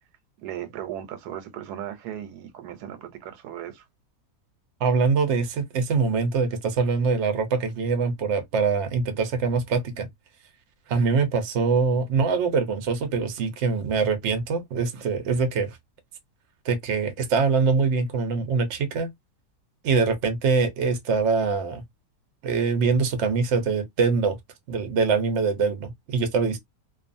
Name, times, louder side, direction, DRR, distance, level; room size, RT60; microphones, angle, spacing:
voice 1, 0.4-3.9, right 11 dB, 90° right, 1.2 m, -37 dB
voice 2, 4.8-10.1 10.9-15.8 16.6-19.1 19.8-21.8 22.4-24.4 24.7-26.6, right 5 dB, 60° right, 0.9 m, -23 dB
2.6 x 2.4 x 2.5 m
omnidirectional pair, 1.7 m